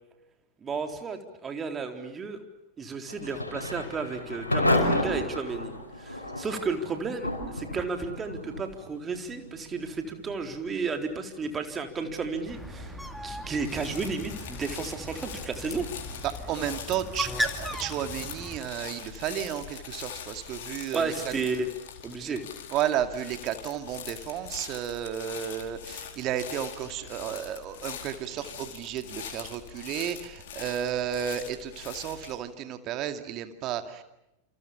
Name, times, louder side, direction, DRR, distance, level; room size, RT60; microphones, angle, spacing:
voice 1, 0.6-2.4 2.8-5.7 6.0-12.9 13.2-15.9 20.9-21.7 22.0-22.4, right 4 dB, 20° right, 5 dB, 4.0 m, -33 dB
Thunder / Rain, 3.0-19.8, left 1 dB, 80° left, 5.4 m, -35 dB
Bird, 12.5-18.6, equal, ahead, 2.3 m, -37 dB
sound 1, 13.6-32.4, left 8 dB, 55° left, 4.4 m, -42 dB
voice 2, 16.2-21.3 22.2-22.4 22.7-34.0, right 10 dB, 35° right, 8 dB, 2.3 m, -33 dB
28.5 x 28.5 x 7.1 m, 0.87 s
figure-of-eight pair, 90°, 0 cm